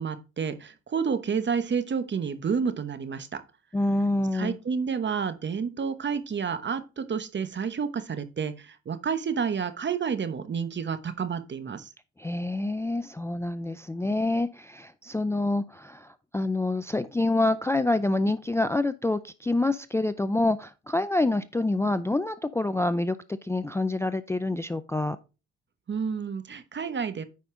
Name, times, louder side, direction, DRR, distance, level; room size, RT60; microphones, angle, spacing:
voice 1, 0.0-3.4 4.3-11.9 25.9-27.2, right 6 dB, 40° right, 11 dB, 1.0 m, -30 dB
voice 2, 3.7-4.6 12.2-25.2, left 2 dB, 10° left, 13 dB, 0.4 m, -27 dB
9.4 x 5.3 x 3.8 m, 0.31 s
cardioid pair, 90°, 30 cm